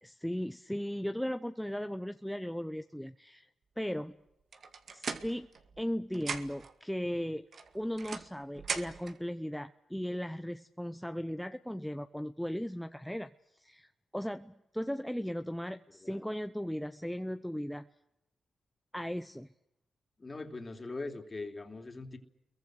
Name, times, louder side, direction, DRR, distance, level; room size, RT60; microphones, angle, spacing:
voice 1, 0.0-3.5 3.8-4.2 4.9-5.5 5.8-7.4 7.7-17.9 18.9-19.5, equal, 5° left, 8 dB, 0.8 m, -37 dB
sound 1, 4.5-5.9 6.1-6.7 7.5-9.2, right 5 dB, 60° right, 2.1 m, -40 dB
voice 2, 20.2-22.2, left 3 dB, 30° left, 5 dB, 3.3 m, -41 dB
29.5 x 23.0 x 6.5 m, 0.89 s
cardioid pair, 70°, 0 cm